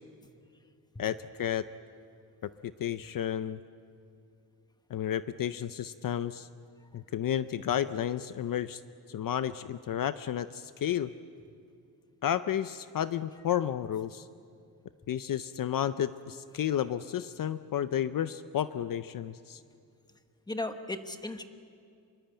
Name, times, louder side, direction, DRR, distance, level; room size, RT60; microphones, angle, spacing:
voice 1, 1.0-1.7 2.4-3.6 4.9-6.5 6.9-8.8 9.1-11.1 12.2-14.3 15.1-19.6, left 10 dB, 55° left, 13 dB, 0.6 m, -32 dB
voice 2, 20.5-21.4, left 2 dB, 10° left, 8 dB, 1.2 m, -36 dB
25.5 x 23.0 x 8.9 m, 2.4 s
wide cardioid pair, 170°, 41 cm